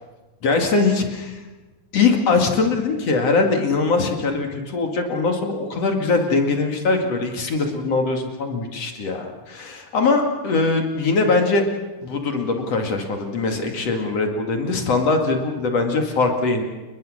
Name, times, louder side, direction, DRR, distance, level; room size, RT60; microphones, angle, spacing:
voice 1, 0.4-1.4 1.9-11.6 12.0-16.6, left 3 dB, 50° left, 3 dB, 3.0 m, -21 dB
29.5 x 21.5 x 6.5 m, 1.2 s
omnidirectional pair, 4.0 m